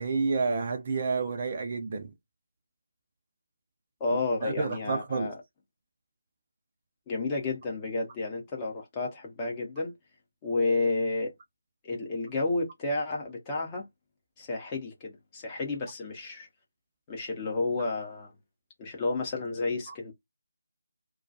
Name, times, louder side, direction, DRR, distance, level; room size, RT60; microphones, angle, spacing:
voice 1, 0.0-2.1 4.1-5.3, right 4 dB, 35° right, 0.4 m, -30 dB
voice 2, 4.0-5.4 7.1-9.9 10.4-11.3 11.8-13.8 14.4-16.5 17.1-18.3 18.8-20.1, left 3 dB, 20° left, 0.7 m, -31 dB
2.3 x 2.2 x 2.6 m
figure-of-eight pair, 155°, 0 cm